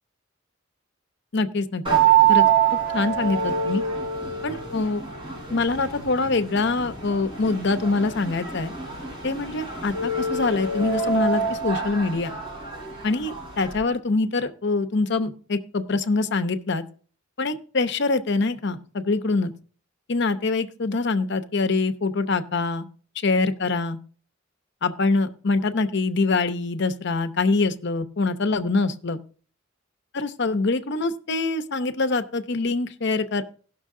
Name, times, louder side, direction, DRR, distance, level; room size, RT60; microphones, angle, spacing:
voice 1, 1.3-1.8 2.3-2.4 2.9-3.8 4.4-5.0 5.5-8.7 9.2-12.3 13.0-16.8 17.4-19.5 20.1-22.9 23.2-24.0 24.8-29.2 30.1-33.4, left 3 dB, 60° left, 10 dB, 0.8 m, -24 dB
sound 1, 1.8-13.8, right 7 dB, 25° right, 4.8 m, -25 dB
17.0 x 6.2 x 3.7 m, 0.41 s
head